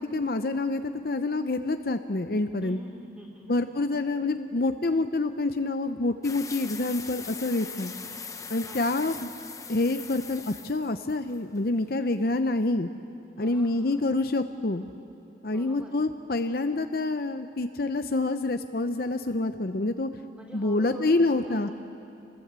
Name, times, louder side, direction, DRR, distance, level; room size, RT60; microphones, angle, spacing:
voice 1, 0.1-2.8 3.5-7.9 8.5-9.3 9.7-12.9 13.4-14.8 15.4-20.1 20.5-21.7, left 2 dB, 55° left, 8 dB, 0.7 m, -27 dB
voice 2, 2.6-4.0 8.6-8.9 13.3-14.1 15.5-16.0 20.3-21.7, equal, 5° right, -1 dB, 4.2 m, -46 dB
sound 1, 6.2-11.6, left 6 dB, 15° left, 0.8 m, -41 dB
28.0 x 20.5 x 8.2 m, 2.6 s
head